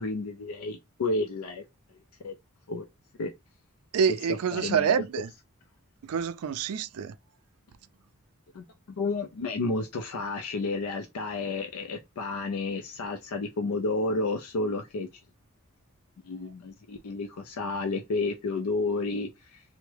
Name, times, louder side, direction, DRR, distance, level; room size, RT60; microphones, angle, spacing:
voice 1, 0.0-1.6 2.2-2.3 2.7-2.9 3.2-3.3 4.5-4.9 8.5-8.6 9.0-15.1 16.2-19.6, left 3 dB, 85° left, 0.4 m, -31 dB
voice 2, 3.9-5.3 6.0-7.1, right 7 dB, 85° right, 0.3 m, -27 dB
3.4 x 2.1 x 3.2 m
head